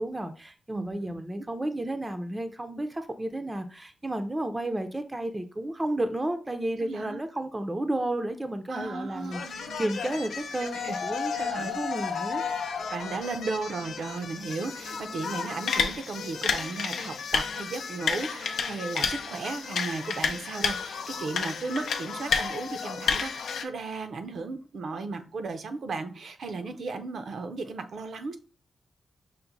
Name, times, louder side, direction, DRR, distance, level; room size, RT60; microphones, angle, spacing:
voice 1, 0.0-12.4, right 1 dB, 15° right, 8 dB, 0.4 m, -32 dB
voice 2, 0.7-1.2 6.8-7.2 8.7-9.9 10.6-11.0 11.3-11.8 12.9-28.4, right 3 dB, 65° right, 8 dB, 0.5 m, -35 dB
Bastoners de Terrassa, 9.2-23.6, left 6 dB, 85° left, 0.5 m, -32 dB
5.8 x 2.1 x 3.9 m, 0.37 s
wide cardioid pair, 110°, 0 cm